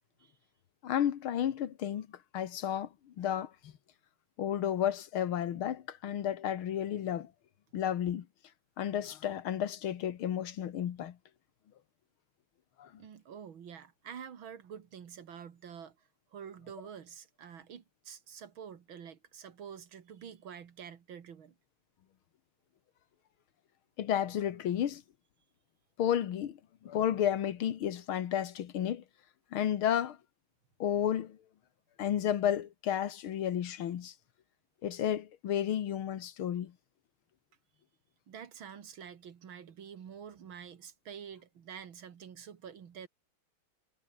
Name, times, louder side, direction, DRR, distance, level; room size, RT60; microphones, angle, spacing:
voice 1, 0.8-2.1 2.3-2.9 3.2-3.7 4.4-7.3 7.7-8.3 8.8-11.2 12.8-12.9 24.0-25.0 26.0-26.6 26.8-29.0 29.5-30.2 30.8-31.4 32.0-34.1 34.8-36.7, left 10 dB, 80° left, 2.2 m, -32 dB
voice 2, 13.0-21.5 38.3-43.1, right 8 dB, 70° right, 2.4 m, -48 dB
omnidirectional pair, 2.3 m